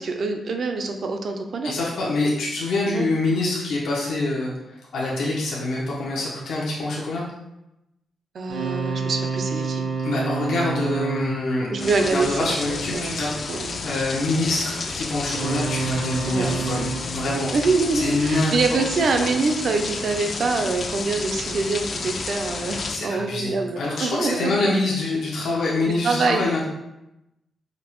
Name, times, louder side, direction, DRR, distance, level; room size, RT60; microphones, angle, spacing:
voice 1, 0.0-1.7 2.9-3.1 8.3-9.8 11.7-13.8 16.3-16.7 17.5-24.6 25.9-26.5, right 3 dB, 55° right, 5 dB, 0.4 m, -25 dB
voice 2, 1.6-7.2 10.0-17.5 17.9-18.5 19.2-19.3 22.9-26.6, left 2 dB, 80° left, -5 dB, 0.7 m, -25 dB
sound 1, 8.5-12.9 15.2-18.5, right 5 dB, 75° right, 1.4 m, -29 dB
sound 2, 11.8-23.0, left 4 dB, 45° left, 0.3 m, -31 dB
5.0 x 2.0 x 3.0 m, 0.90 s
cardioid pair, 125°, 0 cm